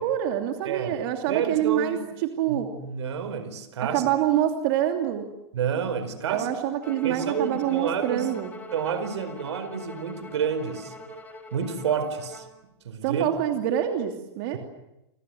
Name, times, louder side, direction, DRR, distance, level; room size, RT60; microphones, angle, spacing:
voice 1, 0.0-2.7 3.9-5.3 6.3-8.5 13.0-14.6, right 11 dB, 55° right, 4 dB, 3.0 m, -26 dB
voice 2, 0.6-1.0 1.3-2.0 2.5-4.0 5.5-6.5 7.0-8.3 8.7-10.9 11.5-12.4 12.8-13.3, right 7 dB, 80° right, 12 dB, 4.7 m, -29 dB
Bowed string instrument, 6.8-12.6, equal, 10° left, 4.5 m, -43 dB
28.5 x 25.0 x 7.9 m, 0.89 s
hypercardioid pair, 130°, 14 cm